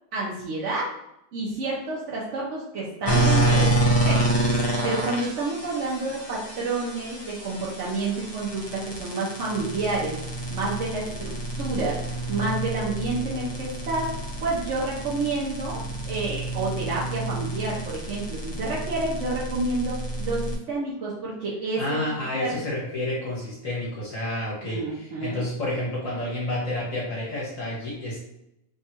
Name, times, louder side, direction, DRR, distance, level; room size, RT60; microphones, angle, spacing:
voice 1, 0.1-0.9 1.3-4.2 4.8-10.2 10.5-14.1 14.4-22.0 22.3-22.6 24.6-25.5, right 3 dB, 60° right, -5 dB, 1.0 m, -29 dB
sound 1, 3.0-20.6, right 1 dB, 45° left, 0.3 m, -28 dB
voice 2, 21.8-28.2, left 1 dB, 60° left, -6 dB, 1.4 m, -30 dB
3.5 x 2.4 x 4.2 m, 0.81 s
omnidirectional pair, 1.5 m